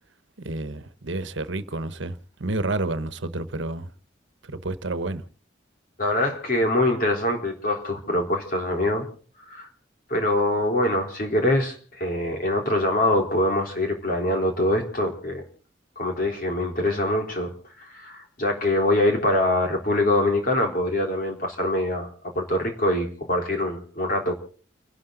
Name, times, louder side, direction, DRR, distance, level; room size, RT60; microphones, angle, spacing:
voice 1, 0.4-3.9 4.4-5.2, right 2 dB, 80° right, 1.1 m, -30 dB
voice 2, 6.0-9.1 9.5-9.7 10.1-15.4 16.0-17.5 17.8-22.1 22.3-24.3, left 1 dB, 50° left, 3.8 m, -24 dB
30.0 x 12.0 x 3.9 m
head